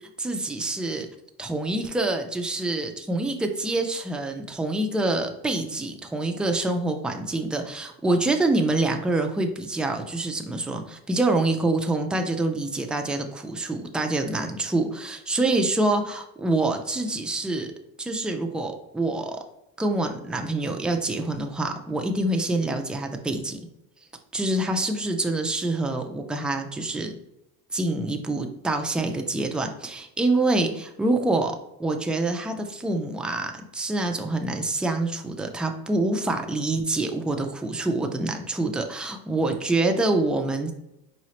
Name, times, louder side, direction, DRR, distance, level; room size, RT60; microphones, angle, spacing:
voice 1, 0.2-1.1 1.4-17.7 18.0-19.4 19.8-23.6 24.3-27.2 27.7-40.7, right 2 dB, 5° right, 4 dB, 0.4 m, -26 dB
4.8 x 3.0 x 2.8 m, 0.85 s
supercardioid pair, 100°, 36 cm